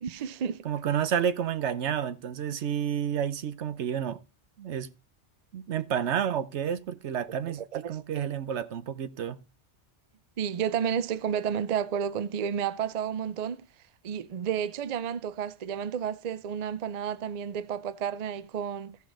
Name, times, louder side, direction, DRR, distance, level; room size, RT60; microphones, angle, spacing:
voice 1, 0.0-0.6 7.7-8.0 10.4-13.6 14.0-19.0, right 8 dB, 50° right, 0.5 m, -31 dB
voice 2, 0.6-4.2 4.6-4.9 5.5-9.4, right 8 dB, 80° right, 1.0 m, -30 dB
15.0 x 5.4 x 3.8 m
omnidirectional pair, 1.2 m